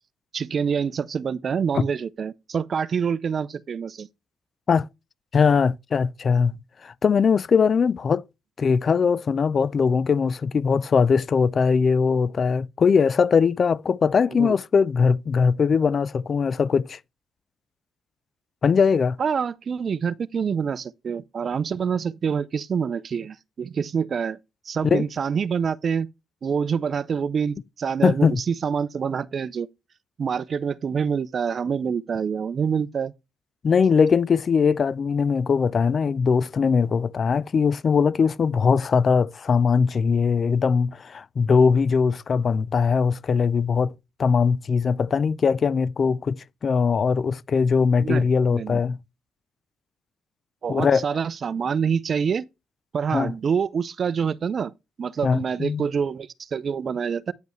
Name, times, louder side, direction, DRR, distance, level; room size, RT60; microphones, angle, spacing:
voice 1, 0.3-4.1 14.4-14.5 19.2-24.4 24.7-26.1 26.4-29.7 30.2-33.1 48.0-48.3 48.5-48.8 50.6-52.4 52.9-54.7 55.0-57.3, right 6 dB, 50° right, 0.5 m, -26 dB
voice 2, 5.3-6.6 6.8-8.2 8.6-17.0 18.6-19.2 24.8-25.0 28.0-28.4 33.6-43.9 44.2-49.0 50.7-51.1 53.1-53.3 55.2-55.8, left 5 dB, 45° left, 0.3 m, -21 dB
9.2 x 5.3 x 3.1 m
cardioid pair, 90°, 0 cm